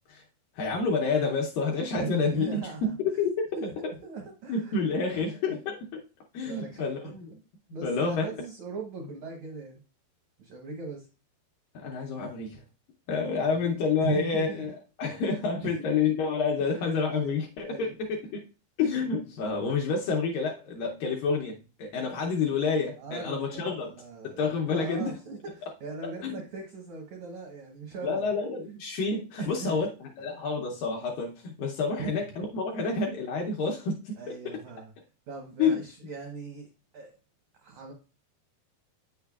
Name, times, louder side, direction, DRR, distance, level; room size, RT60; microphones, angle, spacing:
voice 1, 0.6-3.4 3.8-3.9 4.5-6.0 6.3-7.3 7.8-8.3 11.7-12.6 13.1-18.4 18.8-23.9 24.2-25.1 26.2-26.4 28.0-29.9 30.2-34.2 34.5-34.6 35.6-35.8, left 4 dB, 75° left, 0 dB, 2.1 m, -29 dB
voice 2, 1.9-2.9 3.5-5.6 6.5-7.1 7.7-9.8 10.4-11.1 13.4-13.7 14.0-14.7 15.0-15.9 16.6-16.8 17.1-18.0 23.0-28.3 29.4-29.8 30.3-30.4 32.0-32.2 32.8-32.9 34.2-34.9 35.3-37.2 37.6-37.9, right 4 dB, 80° right, 0 dB, 1.6 m, -40 dB
8.6 x 6.6 x 2.3 m, 0.33 s
omnidirectional pair, 4.7 m